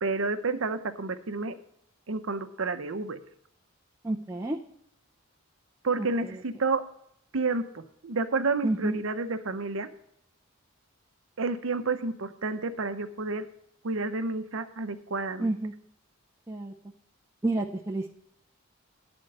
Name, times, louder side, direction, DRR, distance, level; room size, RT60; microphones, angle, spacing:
voice 1, 0.0-1.6 2.1-3.2 5.8-6.8 7.3-9.9 11.4-13.5 13.8-15.5, right 3 dB, 70° right, 9 dB, 0.7 m, -30 dB
voice 2, 4.0-4.6 6.0-6.4 8.6-8.9 15.4-15.7 16.5-16.7 17.4-18.1, right 2 dB, 15° right, -1 dB, 0.5 m, -30 dB
10.5 x 4.3 x 7.8 m, 0.75 s
head